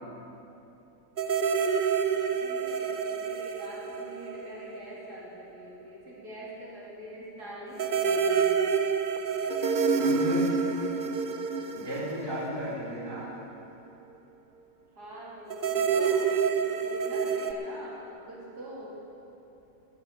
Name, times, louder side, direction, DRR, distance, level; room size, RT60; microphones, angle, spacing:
sound 1, 1.2-4.9 5.2-5.3 7.8-13.2 15.5-17.5, right 6 dB, 85° right, 0.4 m, -28 dB
voice 1, 2.1-8.5 14.9-16.4 16.7-19.0, right 1 dB, 70° right, -6 dB, 3.2 m, -44 dB
voice 2, 10.0-10.5 11.8-13.3, left 1 dB, 15° right, -7 dB, 2.9 m, -34 dB
13.5 x 9.7 x 7.0 m, 2.9 s
omnidirectional pair, 1.8 m